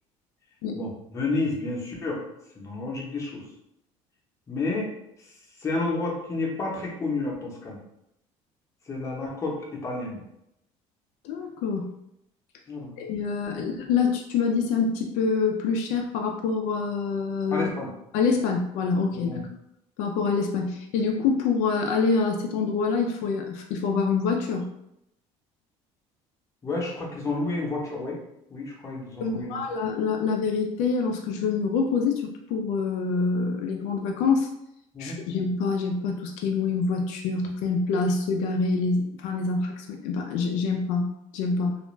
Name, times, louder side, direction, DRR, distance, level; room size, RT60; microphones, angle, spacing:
voice 1, 0.7-2.2 2.6-3.5 4.5-4.9 5.6-7.8 8.9-10.2 12.7-12.9 13.5-13.6 17.5-17.9 19.1-19.4 26.6-28.2 28.5-29.6 34.9-35.2, left 3 dB, 25° left, -3 dB, 0.7 m, -30 dB
voice 2, 11.2-11.9 13.0-17.7 18.1-19.5 20.0-24.7 29.2-34.5 35.0-41.8, left 4 dB, 80° left, 2 dB, 0.4 m, -26 dB
2.4 x 2.1 x 3.1 m, 0.82 s
cardioid pair, 140°, 12 cm